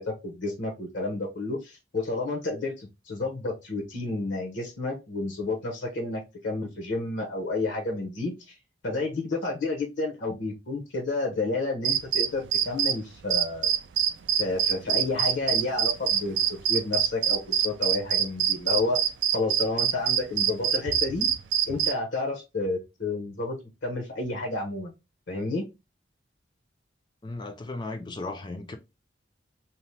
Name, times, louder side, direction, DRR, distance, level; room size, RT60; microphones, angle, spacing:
voice 1, 0.0-8.3 8.8-13.7 14.4-19.0 19.3-21.3 21.7-24.9 25.3-25.7, left 2 dB, 75° left, 0.8 m, -30 dB
sound 1, 11.8-13.0 13.3-21.9, right 10 dB, 70° right, 0.3 m, -24 dB
voice 2, 27.2-28.8, left 2 dB, 25° left, 0.4 m, -36 dB
2.8 x 2.1 x 3.0 m
head